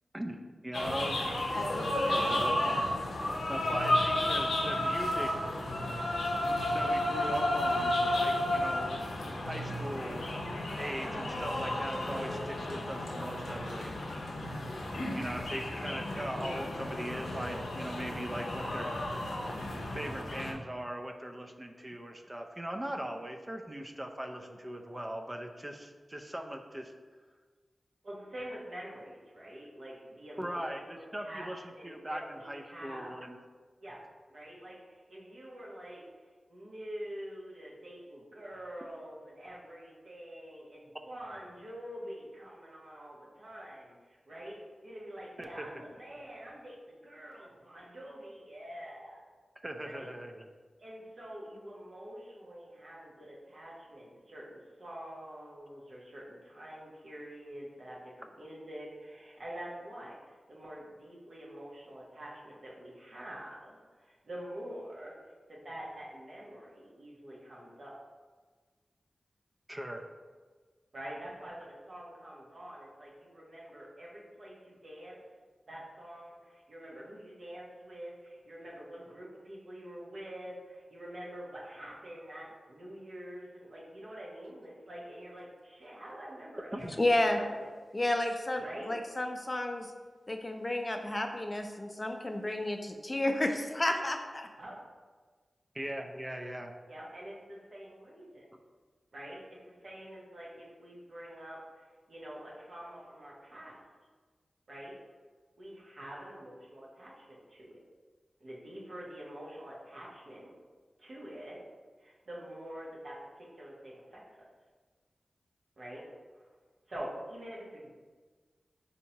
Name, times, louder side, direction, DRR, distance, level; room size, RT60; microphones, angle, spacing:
voice 1, 0.1-1.2 2.1-2.6 3.5-5.4 6.7-9.0 9.5-10.3 10.8-14.0 15.1-18.9 20.0-26.9 30.4-33.4 45.4-45.6 49.6-50.5 69.7-70.0 86.7-87.0 95.7-96.7, right 1 dB, 25° right, 3 dB, 0.4 m, -40 dB
sound 1, 0.7-20.5, left 1 dB, 85° left, 0.5 m, -32 dB
voice 2, 28.0-33.2 33.8-34.0 34.3-49.2 49.8-50.1 50.8-60.2 60.5-65.1 65.5-67.9 70.9-75.2 75.7-87.7 88.6-88.9 94.6-94.8 96.9-98.4 99.1-103.8 104.7-105.0 105.6-107.8 108.4-110.5 111.0-111.6 112.0-114.4 115.8-116.0 116.3-116.5 116.9-117.9, equal, 70° right, -5 dB, 0.9 m, -46 dB
voice 3, 87.0-87.4 87.9-89.9 90.3-94.5, left 1 dB, 30° left, 4 dB, 0.4 m, -31 dB
4.2 x 2.8 x 2.8 m, 1.4 s
cardioid pair, 45°, 0 cm